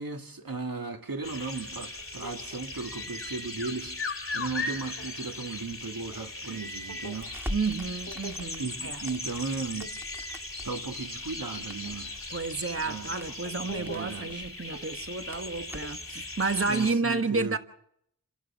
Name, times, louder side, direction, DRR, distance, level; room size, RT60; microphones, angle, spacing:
voice 1, 0.0-7.3 8.6-9.9 10.6-12.1 12.9-13.1 13.6-14.5 16.7-17.6, right 4 dB, 80° right, 2.2 m, -36 dB
sound 1, 1.2-16.9, left 2 dB, 40° left, 2.9 m, -38 dB
Crackle, 7.2-16.1, equal, 5° right, 2.0 m, -45 dB
voice 2, 7.5-9.0 12.3-17.6, right 4 dB, 40° right, 1.4 m, -31 dB
29.5 x 12.5 x 7.4 m
wide cardioid pair, 40°, 35 cm